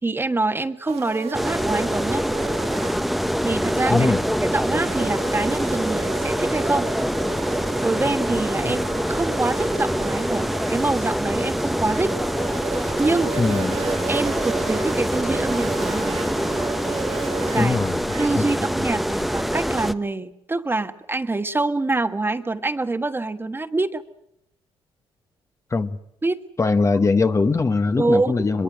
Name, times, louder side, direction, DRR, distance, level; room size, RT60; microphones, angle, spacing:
voice 1, 0.0-2.2 3.4-4.1 4.4-6.9 7.8-12.1 13.0-13.3 14.1-16.2 17.5-17.8 18.2-24.0 26.2-26.4 28.0-28.4, right 2 dB, 20° right, 1.4 m, -25 dB
sound 1, 0.9-18.5, right 8 dB, 70° right, 1.6 m, -36 dB
sound 2, 1.3-19.9, equal, ahead, 1.0 m, -24 dB
voice 2, 13.4-13.8 17.6-18.0 18.3-18.4 25.7-26.0 26.6-28.6, left 3 dB, 30° left, 1.1 m, -21 dB
22.5 x 22.0 x 7.8 m
cardioid pair, 85°, 11 cm